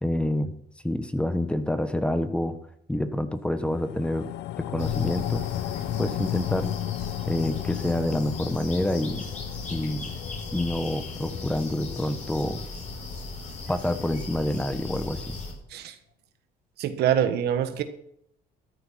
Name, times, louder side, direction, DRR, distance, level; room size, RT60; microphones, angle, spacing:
voice 1, 0.0-0.5 0.8-2.6 2.9-4.3 4.6-5.5 6.0-6.7 7.3-9.3 9.7-10.1 10.5-12.6 13.7-15.4, left 1 dB, 5° left, 10 dB, 1.2 m, -27 dB
sound 1, 3.6-14.2 14.5-14.6, left 15 dB, 80° left, 0.6 m, -35 dB
sound 2, 4.8-15.5, left 3 dB, 45° left, 5.5 m, -37 dB
voice 2, 16.8-17.8, right 9 dB, 75° right, 8 dB, 1.5 m, -25 dB
13.5 x 10.5 x 5.9 m, 0.71 s
cardioid pair, 110°, 17 cm